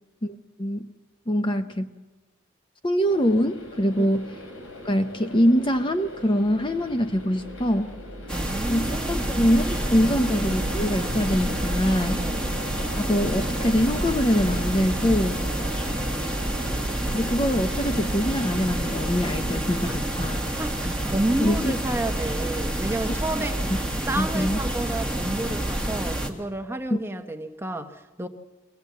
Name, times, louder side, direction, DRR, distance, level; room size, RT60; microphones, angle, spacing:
voice 1, 0.2-0.9 1.3-1.9 2.8-4.3 4.8-7.9 8.7-12.2 13.0-15.4 17.1-20.4 21.4-21.7 24.2-24.6 26.9-27.0, equal, 25° left, 8 dB, 0.7 m, -24 dB
sound 1, 3.1-19.9, left 1 dB, 90° left, 4.7 m, -42 dB
sound 2, 5.7-20.0, right 1 dB, 50° right, 1.2 m, -39 dB
sound 3, 8.3-26.3, right 1 dB, 5° left, 1.7 m, -28 dB
voice 2, 8.3-9.3 10.0-10.2 12.1-12.5 15.6-15.9 19.8-20.0 20.3-23.7 24.1-28.3, right 1 dB, 10° right, 6 dB, 0.9 m, -31 dB
23.5 x 18.0 x 8.4 m, 1.2 s
head